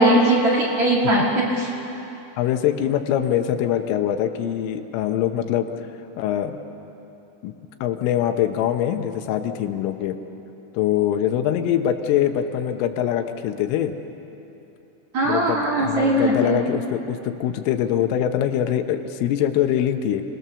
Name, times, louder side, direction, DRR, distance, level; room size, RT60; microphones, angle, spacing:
voice 1, 0.0-1.7 15.1-16.6, right 1 dB, 50° right, -4 dB, 2.5 m, -19 dB
voice 2, 2.4-5.7 6.2-6.6 7.4-7.5 7.8-10.2 10.7-13.9 15.2-20.2, left 10 dB, 80° left, 6 dB, 3.5 m, -23 dB
27.5 x 18.5 x 6.9 m, 3.0 s
omnidirectional pair, 5.8 m